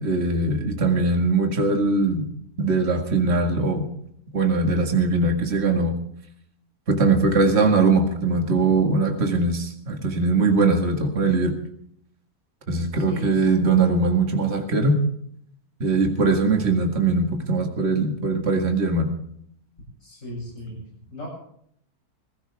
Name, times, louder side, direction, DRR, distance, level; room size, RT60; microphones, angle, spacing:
voice 1, 0.0-2.3 2.6-3.9 4.3-5.9 6.9-11.5 12.7-15.0 15.8-19.1, right 3 dB, 45° right, 3 dB, 2.2 m, -21 dB
voice 2, 13.0-13.7 20.0-20.8 21.1-21.3, left 1 dB, 55° left, -2 dB, 8.5 m, -38 dB
21.5 x 15.5 x 3.5 m, 0.68 s
omnidirectional pair, 1.6 m